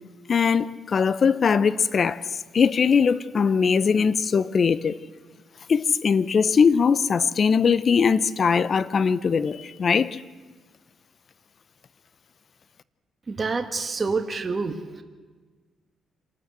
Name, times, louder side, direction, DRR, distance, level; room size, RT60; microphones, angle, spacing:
voice 1, 0.3-2.2 2.5-5.0 5.7-10.2, left 6 dB, 45° left, 0.7 m, -21 dB
voice 2, 13.3-15.0, right 4 dB, 30° right, 1.5 m, -27 dB
27.0 x 13.0 x 7.8 m
cardioid pair, 90°, 0 cm